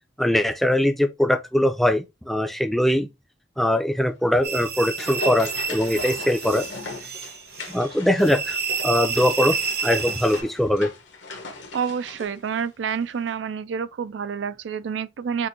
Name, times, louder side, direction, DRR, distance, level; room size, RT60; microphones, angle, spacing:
voice 1, 0.2-3.1 3.6-6.7 7.7-8.6 8.8-9.6 9.8-10.9, left 1 dB, ahead, 0.4 m, -21 dB
sound 1, 4.4-13.0 13.3-13.4, left 2 dB, 80° left, 1.2 m, -38 dB
sound 2, 4.4-10.4, right 5 dB, 55° right, 0.8 m, -30 dB
voice 2, 11.7-15.5, right 6 dB, 80° right, 0.4 m, -28 dB
6.1 x 2.6 x 2.7 m
head